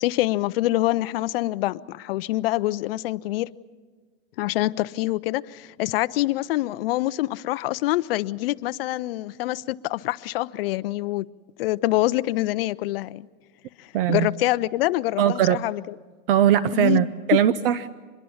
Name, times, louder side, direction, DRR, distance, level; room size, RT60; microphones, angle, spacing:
voice 1, 0.0-3.5 4.4-11.3 11.6-13.3 13.8-15.9 16.7-17.4, left 17 dB, 45° left, 16 dB, 0.6 m, -25 dB
voice 2, 13.9-14.3 15.2-15.6 16.3-17.9, right 10 dB, 45° right, 15 dB, 0.7 m, -20 dB
25.5 x 21.5 x 7.1 m, 1.5 s
hypercardioid pair, 145°, 40 cm